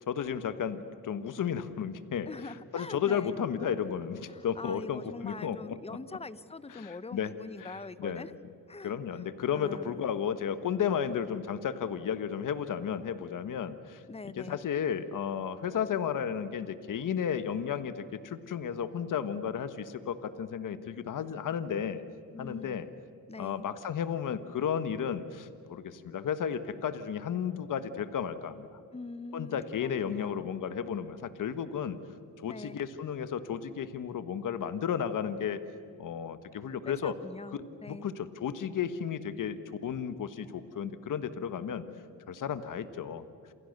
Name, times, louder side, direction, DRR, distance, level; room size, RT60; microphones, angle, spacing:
voice 1, 0.1-5.8 6.7-7.3 7.6-8.3 8.8-14.0 14.4-22.0 22.4-22.9 23.4-28.8 29.3-32.0 32.4-35.6 36.0-37.2 37.9-41.8 42.3-43.3, left 8 dB, 60° left, 11 dB, 1.5 m, -33 dB
voice 2, 2.2-3.4 4.2-8.3 8.7-9.2 9.5-10.0 14.1-14.6 22.3-23.0 23.3-23.7 28.9-30.5 32.4-32.8 36.8-38.1, left 3 dB, 15° left, 16 dB, 0.9 m, -44 dB
28.5 x 27.5 x 6.7 m, 2.4 s
cardioid pair, 95°, 36 cm